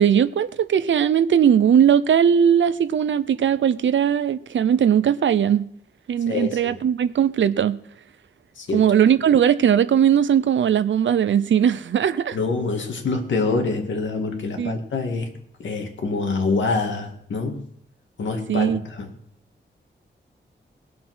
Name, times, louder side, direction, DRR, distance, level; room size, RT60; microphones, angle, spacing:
voice 1, 0.0-5.7 6.1-7.8 8.7-12.4 14.6-14.7 18.5-18.8, right 8 dB, 85° right, 0.7 m, -19 dB
voice 2, 6.3-6.8 8.6-8.8 12.3-15.3 15.6-17.7 18.2-19.1, left 3 dB, 80° left, 2.2 m, -26 dB
19.5 x 7.4 x 6.2 m
wide cardioid pair, 140°, 19 cm